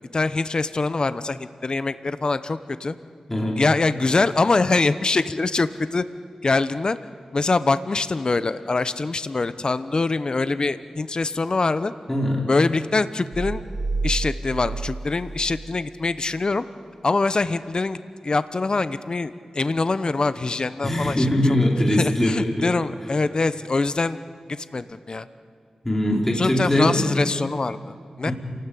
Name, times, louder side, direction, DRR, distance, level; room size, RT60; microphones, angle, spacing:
voice 1, 0.1-3.0 3.5-6.0 6.4-7.0 7.3-11.9 12.4-13.6 14.0-16.6 17.0-18.0 18.2-21.6 21.9-24.2 24.7-25.3 26.3-28.3, left 3 dB, 40° left, 13 dB, 0.9 m, -24 dB
voice 2, 3.3-3.6 12.1-12.5 20.8-22.3 22.6-22.7 25.8-27.1 28.2-28.3, left 1 dB, 15° left, -1 dB, 3.8 m, -21 dB
sound 1, 13.3-16.3, right 3 dB, 25° right, 1.0 m, -30 dB
27.0 x 18.5 x 8.5 m, 2.1 s
wide cardioid pair, 90°, 2 cm